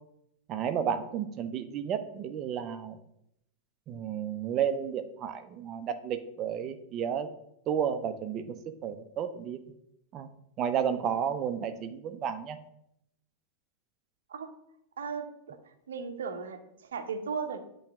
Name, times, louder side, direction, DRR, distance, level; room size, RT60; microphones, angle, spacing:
voice 1, 0.5-3.0 3.9-7.3 7.7-8.6 8.8-9.6 10.1-10.3 10.6-12.6, right 8 dB, 35° right, 9 dB, 0.7 m, -32 dB
voice 2, 15.0-17.6, right 5 dB, 65° right, 6 dB, 0.9 m, -37 dB
8.5 x 3.2 x 6.1 m, 0.77 s
figure-of-eight pair, 90°, 0 cm